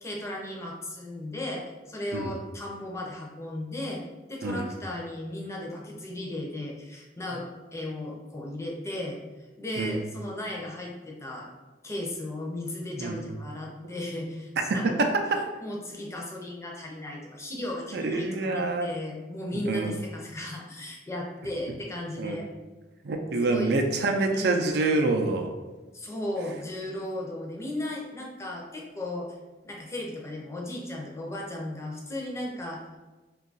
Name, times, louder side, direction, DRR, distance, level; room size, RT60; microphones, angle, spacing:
voice 1, 0.0-9.2 9.6-11.5 11.8-15.0 15.6-22.5 23.4-23.8 24.3-24.7 25.9-29.3 29.6-32.8, left 1 dB, 15° left, -2 dB, 0.5 m, -36 dB
voice 2, 14.7-15.1 17.9-18.9 19.5-20.0 22.2-22.4 23.0-25.5, right 2 dB, 65° right, 4 dB, 0.4 m, -26 dB
2.7 x 2.3 x 3.9 m, 1.2 s
head